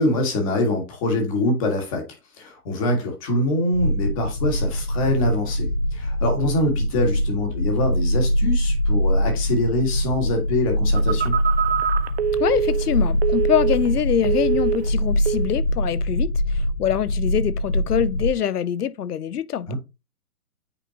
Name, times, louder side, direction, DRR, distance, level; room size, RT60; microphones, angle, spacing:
voice 1, 0.0-2.0 2.3-11.4 19.7-19.8, left 1 dB, 20° left, 1.8 m, -24 dB
sound 1, 3.7-18.3, equal, 45° left, 0.7 m, -23 dB
Telephone, 10.9-14.0 14.2-14.9 15.3-15.6, right 8 dB, 45° right, 0.6 m, -24 dB
voice 2, 12.4-19.7, left 9 dB, 85° left, 0.7 m, -24 dB
8.8 x 4.2 x 2.8 m
hypercardioid pair, 165°, 45 cm